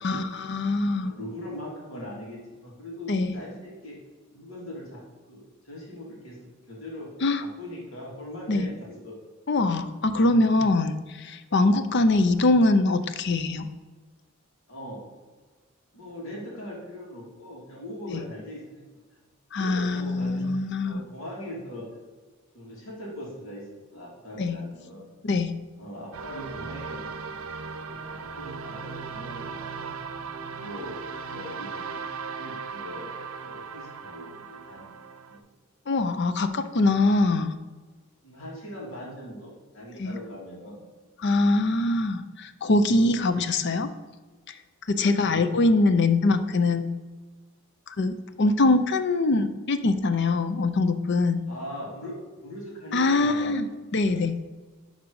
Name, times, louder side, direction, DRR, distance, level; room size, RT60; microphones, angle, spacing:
voice 1, 0.0-1.1 3.1-3.4 7.2-7.4 8.5-8.7 9.5-13.7 19.5-21.0 24.4-24.6 25.2-25.5 35.9-37.5 40.0-40.2 41.2-43.9 44.9-46.9 48.0-51.4 52.9-54.4, left 2 dB, 55° left, 10 dB, 0.5 m, -23 dB
voice 2, 1.0-4.0 4.3-5.0 5.3-6.4 6.7-7.1 7.4-8.7 9.0-9.1 10.0-10.2 14.7-15.0 15.9-18.8 19.6-21.8 22.5-25.1 25.8-29.9 30.6-31.0 31.3-31.7 32.4-33.1 33.4-35.0 35.3-35.4 38.2-40.8 45.0-45.4 51.5-52.1 52.4-53.6 54.0-54.2, equal, 75° left, -4 dB, 2.6 m, -40 dB
sound 1, 26.1-35.4, right 5 dB, 80° right, 0.6 m, -37 dB
11.0 x 4.1 x 4.7 m, 1.3 s
head